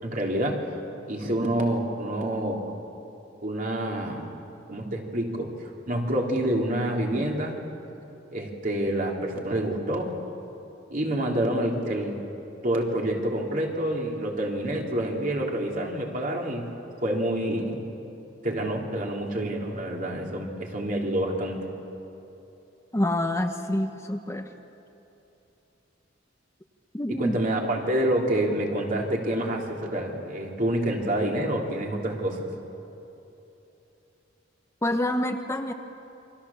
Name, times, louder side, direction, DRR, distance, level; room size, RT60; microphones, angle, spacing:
voice 1, 0.0-0.6 1.1-2.6 3.4-4.4 4.7-5.5 5.9-7.6 8.3-10.1 10.9-12.2 12.6-16.6 17.0-17.8 18.4-21.6 27.1-32.5, right 1 dB, 50° right, -1 dB, 3.5 m, -27 dB
voice 2, 22.9-24.5 26.9-27.4 34.8-35.7, left 1 dB, 15° left, 5 dB, 1.0 m, -27 dB
28.5 x 24.0 x 7.3 m, 2.9 s
head